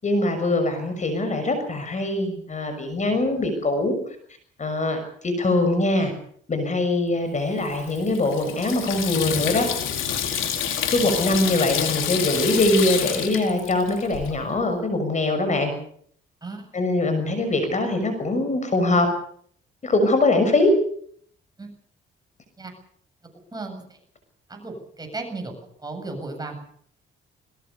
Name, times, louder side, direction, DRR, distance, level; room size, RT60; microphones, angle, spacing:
voice 1, 0.0-3.9 4.6-6.1 6.5-9.7 10.9-15.7 16.7-19.1 19.8-20.7, left 2 dB, 35° left, 8 dB, 6.4 m, -22 dB
Water tap faucet / Sink (filling or washing), 7.6-14.3, left 9 dB, 80° left, 4.3 m, -28 dB
voice 2, 23.5-23.8 24.5-25.5 25.8-26.5, right 3 dB, 20° right, 3 dB, 8.0 m, -34 dB
22.0 x 21.0 x 6.9 m, 0.63 s
cardioid pair, 90°, 20 cm